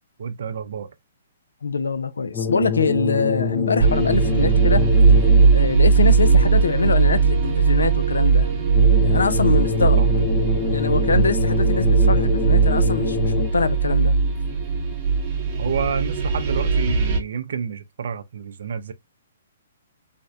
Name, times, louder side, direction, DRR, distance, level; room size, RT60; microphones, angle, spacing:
voice 1, 0.2-0.9 10.0-10.1 15.6-18.9, right 7 dB, 65° right, 0.4 m, -29 dB
voice 2, 1.6-4.8 5.5-8.5 9.0-10.0 10.7-14.1, left 4 dB, 85° left, 0.3 m, -23 dB
sound 1, 2.3-5.8 8.7-13.8, left 6 dB, 20° left, 0.4 m, -26 dB
sound 2, 3.8-17.2, right 5 dB, 35° right, 0.7 m, -18 dB
sound 3, 6.0-13.3, right 4 dB, 85° right, 0.8 m, -36 dB
2.5 x 2.0 x 2.4 m
hypercardioid pair, 130°, 0 cm